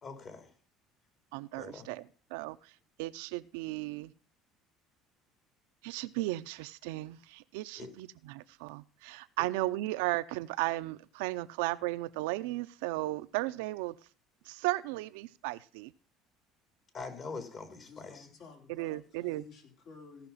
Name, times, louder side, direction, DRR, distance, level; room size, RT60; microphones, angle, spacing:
voice 1, 0.0-0.5 1.5-1.9 7.8-7.9 9.4-9.5 16.9-18.3, left 4 dB, 45° left, 7 dB, 3.3 m, -43 dB
voice 2, 1.3-2.0 2.3-2.6 3.0-4.1 5.8-14.0 14.5-15.9 18.7-19.5, right 18 dB, 90° right, 13 dB, 0.6 m, -35 dB
voice 3, 17.6-20.3, left 5 dB, 65° left, 2 dB, 3.5 m, -53 dB
16.0 x 5.9 x 5.6 m, 0.39 s
supercardioid pair, 100°, 0 cm